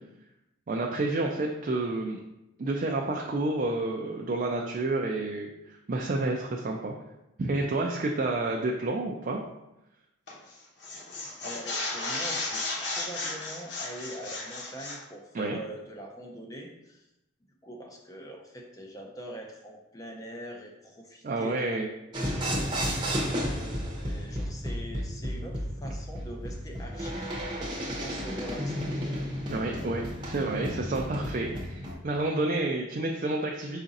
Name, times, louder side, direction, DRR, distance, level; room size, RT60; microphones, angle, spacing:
voice 1, 0.7-2.2 2.6-6.9 7.4-9.4 15.3-15.6 21.2-21.9 29.5-33.8, right 2 dB, 45° right, 0 dB, 0.3 m, -29 dB
sound 1, 10.3-10.5 10.8-15.0, left 2 dB, 60° left, 1.0 m, -34 dB
voice 2, 11.4-17.0 17.6-21.8 22.1-23.1 23.4-27.3 27.8-28.9, equal, 20° left, 0 dB, 0.5 m, -43 dB
sound 2, 22.1-31.9, equal, 25° right, 0.7 m, -33 dB
4.8 x 2.5 x 4.0 m, 0.92 s
head